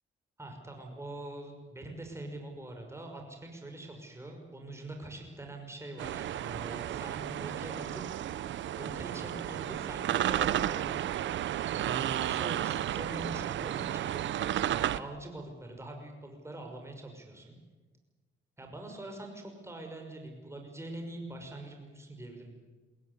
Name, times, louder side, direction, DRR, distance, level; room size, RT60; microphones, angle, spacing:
voice 1, 0.4-8.0 8.8-10.9 11.8-17.6 18.6-22.5, right 2 dB, 15° right, 3 dB, 5.9 m, -44 dB
sound 1, 6.0-15.0, right 11 dB, 70° right, 0.9 m, -32 dB
22.5 x 16.5 x 9.7 m, 1.3 s
cardioid pair, 90°, 20 cm